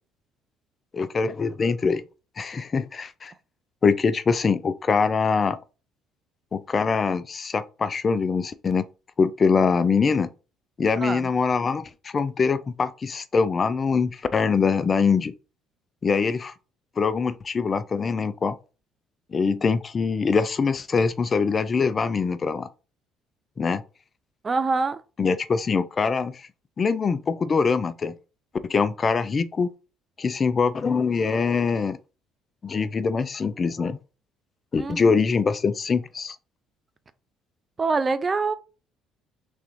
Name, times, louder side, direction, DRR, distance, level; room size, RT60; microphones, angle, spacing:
voice 1, 0.9-2.0 2.4-3.3 3.8-5.6 6.5-8.8 9.2-10.3 10.8-15.3 16.0-16.5 17.0-18.6 19.3-22.7 23.6-23.8 25.2-26.5 26.8-28.2 28.6-29.7 30.2-32.0 32.6-34.0 34.7-36.4, left 5 dB, 35° left, 0.3 m, -23 dB
voice 2, 11.0-11.3 24.4-25.0 34.8-35.1 37.8-38.5, right 4 dB, 30° right, 0.4 m, -25 dB
3.5 x 3.3 x 3.0 m
supercardioid pair, 80°, 0 cm